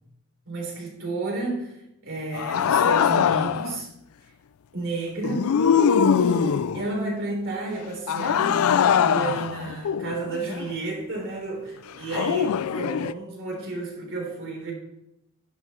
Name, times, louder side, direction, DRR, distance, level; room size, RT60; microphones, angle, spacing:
voice 1, 0.5-3.9 4.7-5.7 6.0-14.7, right 3 dB, 65° right, -1 dB, 3.7 m, -32 dB
sound 1, 2.3-3.8 5.2-6.9 8.1-10.7 12.1-13.1, left 7 dB, 75° left, 0.4 m, -22 dB
10.5 x 5.8 x 5.5 m, 0.83 s
head